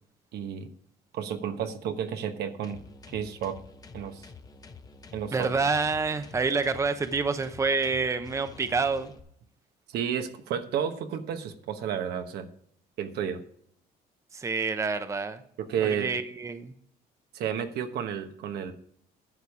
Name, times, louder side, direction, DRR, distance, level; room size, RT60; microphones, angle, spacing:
voice 1, 0.3-0.7 1.1-2.8 3.1-3.6 3.9-4.3 5.1-5.5 9.9-12.5 13.0-13.4 15.6-16.1 17.3-18.7, right 8 dB, 75° right, 7 dB, 1.2 m, -31 dB
sound 1, 2.6-9.2, left 4 dB, 20° left, 0.8 m, -49 dB
voice 2, 5.3-9.1 14.3-15.4 15.8-16.7, right 4 dB, 15° right, 10 dB, 0.7 m, -28 dB
11.0 x 7.1 x 4.8 m, 0.65 s
cardioid pair, 110°, 17 cm